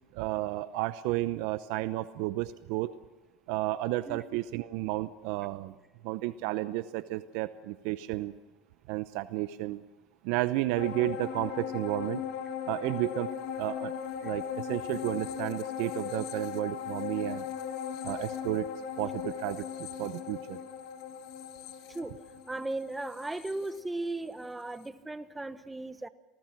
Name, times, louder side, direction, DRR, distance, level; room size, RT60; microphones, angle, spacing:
voice 1, 0.1-2.9 3.5-5.7 6.0-8.3 8.9-9.8 10.2-12.2 12.7-13.3 13.6-13.9 14.2-17.5 18.0-18.7 19.0-20.6, right 16 dB, 70° right, 0.7 m, -32 dB
sound 1, 10.8-24.4 24.8-24.9, left 8 dB, 65° left, 2.0 m, -38 dB
voice 2, 21.9-22.2 22.5-26.1, right 2 dB, 10° right, 1.2 m, -36 dB
28.0 x 18.5 x 6.0 m
supercardioid pair, 110°, 0 cm